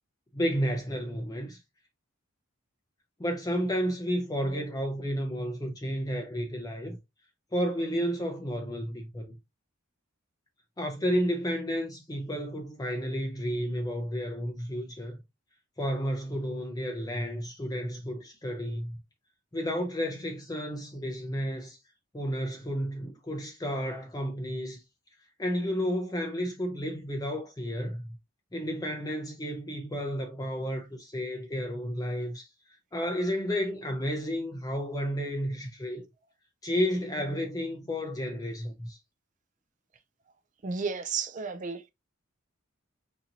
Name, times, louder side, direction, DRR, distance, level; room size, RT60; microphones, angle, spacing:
voice 1, 0.3-1.6 3.2-7.0 7.5-9.4 10.8-15.2 15.8-19.0 19.5-21.8 22.1-24.8 25.4-28.2 28.5-36.1 36.6-39.0, equal, 15° left, 0.5 m, -32 dB
voice 2, 40.6-41.9, right 5 dB, 35° right, 0.4 m, -32 dB
4.2 x 2.6 x 2.8 m
head